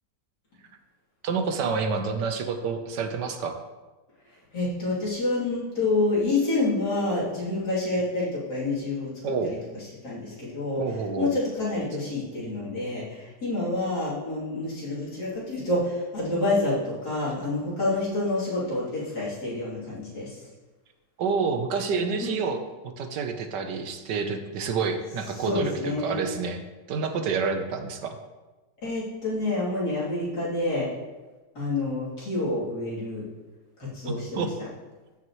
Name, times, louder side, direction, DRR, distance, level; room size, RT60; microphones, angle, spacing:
voice 1, 1.2-3.5 9.2-9.5 10.8-11.3 21.2-22.6 23.0-26.6 26.9-28.2 34.1-34.5, right 5 dB, 80° right, 7 dB, 1.5 m, -28 dB
voice 2, 4.5-9.1 9.4-9.6 10.0-10.8 11.2-20.4 22.2-22.4 25.4-26.2 28.8-30.9 31.6-33.3 33.8-34.4, left 2 dB, 65° left, -8 dB, 3.7 m, -28 dB
14.5 x 6.0 x 3.1 m, 1.2 s
omnidirectional pair, 1.8 m